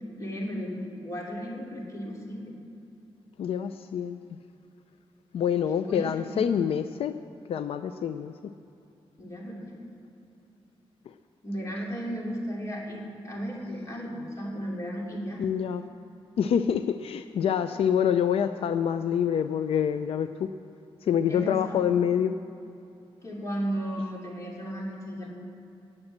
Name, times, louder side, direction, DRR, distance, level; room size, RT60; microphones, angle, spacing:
voice 1, 0.2-2.4 5.8-6.5 9.2-9.9 11.4-15.4 21.3-21.8 23.2-25.3, equal, 35° left, -2 dB, 2.9 m, -35 dB
voice 2, 3.4-4.2 5.3-7.1 7.5-8.5 15.4-15.8 16.4-20.5 21.0-22.3, left 8 dB, 85° left, 10 dB, 0.5 m, -26 dB
18.0 x 7.7 x 7.4 m, 2.8 s
wide cardioid pair, 175°, 10 cm